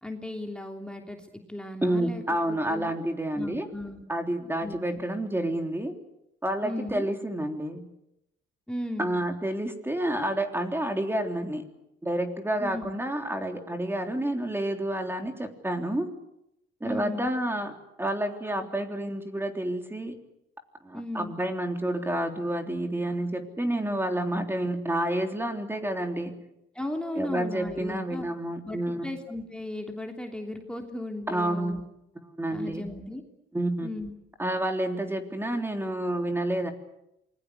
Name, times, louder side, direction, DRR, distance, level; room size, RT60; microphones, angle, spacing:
voice 1, 0.0-2.2 2.5-2.9 3.3-4.0 4.6-5.0 6.6-7.1 8.7-9.1 12.6-12.9 16.8-17.3 20.9-21.3 26.7-28.3 28.6-31.8 32.5-33.2 33.8-34.1, left 1 dB, 5° left, 2 dB, 3.1 m, -36 dB
voice 2, 1.8-3.7 4.1-5.9 6.4-7.8 9.0-11.6 12.0-16.1 16.8-17.7 18.0-20.2 20.8-26.3 27.1-29.1 31.3-31.7 32.2-32.9 33.5-33.9 34.4-36.7, right 1 dB, 10° right, 5 dB, 3.5 m, -29 dB
27.0 x 21.0 x 8.3 m, 0.83 s
cardioid pair, 90°, 20 cm